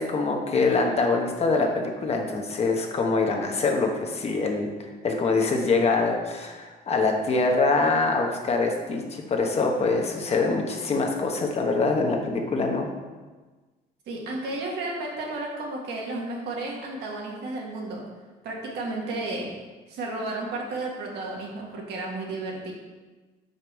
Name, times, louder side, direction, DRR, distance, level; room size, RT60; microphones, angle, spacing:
voice 1, 0.0-12.9, left 3 dB, 40° left, 2 dB, 1.1 m, -24 dB
voice 2, 14.1-18.1 18.4-19.5 19.9-22.7, right 2 dB, 75° right, -2 dB, 1.9 m, -32 dB
5.2 x 4.8 x 6.1 m, 1.3 s
cardioid pair, 110°, 17 cm